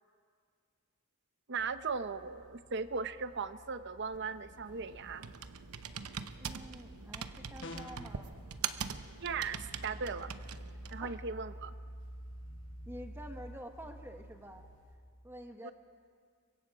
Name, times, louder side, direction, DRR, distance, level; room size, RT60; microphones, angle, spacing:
voice 1, 1.5-5.3 9.2-10.3 10.9-11.7 15.6-15.7, right 5 dB, 50° right, 12 dB, 0.7 m, -38 dB
sound 1, 1.6-14.9, right 1 dB, 70° left, 5.7 m, -51 dB
Computer keyboard, 4.1-11.1, right 7 dB, 85° right, 0.9 m, -43 dB
voice 2, 6.4-8.3 11.0-11.2 12.9-14.6 15.2-15.7, equal, 10° right, 5 dB, 1.4 m, -48 dB
sound 2, 7.6-8.2, left 2 dB, 55° left, 1.5 m, -44 dB
30.0 x 24.0 x 4.9 m, 2.1 s
head